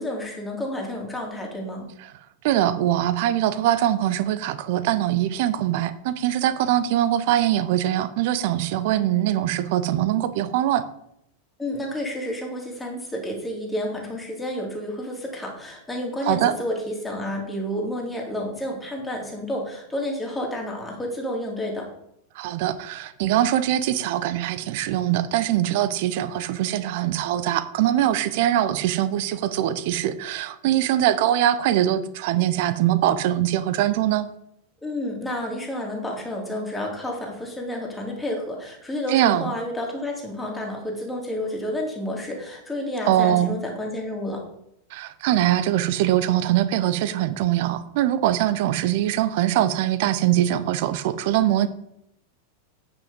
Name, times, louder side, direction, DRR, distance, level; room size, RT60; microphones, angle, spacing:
voice 1, 0.0-1.8 11.6-21.9 34.8-44.4, left 1 dB, 10° left, -1 dB, 2.5 m, -30 dB
voice 2, 2.4-10.8 16.2-16.5 22.4-34.3 39.1-39.5 43.1-43.6 44.9-51.7, right 12 dB, 50° right, 14 dB, 0.6 m, -22 dB
9.1 x 5.3 x 5.2 m, 0.76 s
figure-of-eight pair, 90°, 0 cm